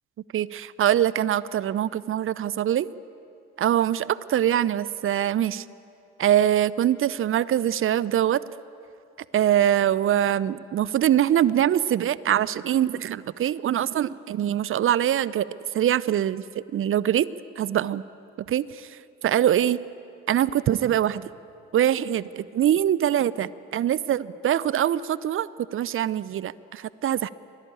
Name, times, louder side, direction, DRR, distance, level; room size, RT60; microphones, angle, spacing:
voice 1, 0.3-2.9 3.6-5.6 6.2-8.4 9.3-15.5 15.7-17.3 17.6-18.0 18.5-18.9 19.2-19.8 20.3-21.3 21.7-27.3, right 11 dB, 40° right, 19 dB, 0.7 m, -23 dB
25.0 x 19.0 x 8.9 m, 2.6 s
figure-of-eight pair, 50°, 31 cm